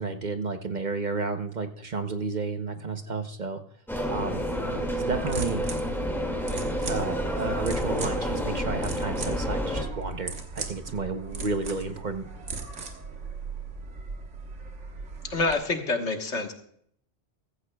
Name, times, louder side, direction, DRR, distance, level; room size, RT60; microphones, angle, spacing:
voice 1, 0.0-3.6 4.1-4.4 5.0-5.6 6.9-12.3, right 4 dB, 45° right, 7 dB, 0.8 m, -32 dB
sound 1, 3.9-9.8, equal, ahead, 2.0 m, -29 dB
sound 2, 5.1-15.5, right 4 dB, 85° right, 1.6 m, -38 dB
voice 2, 15.3-16.5, left 3 dB, 75° left, 4 dB, 1.7 m, -27 dB
15.0 x 15.0 x 2.3 m, 0.67 s
omnidirectional pair, 1.2 m